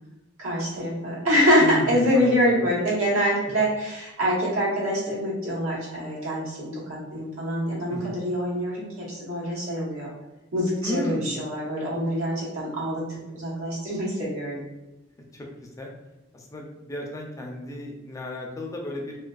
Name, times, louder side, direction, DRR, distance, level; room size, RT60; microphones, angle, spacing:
voice 1, 0.4-10.1 10.5-13.0 13.3-14.6, equal, 85° right, -6 dB, 1.0 m, -25 dB
voice 2, 1.6-2.6 7.9-8.1 10.8-11.3 15.3-15.9 16.3-19.2, left 1 dB, 15° left, 0 dB, 0.3 m, -34 dB
2.4 x 2.3 x 2.2 m, 1.0 s
head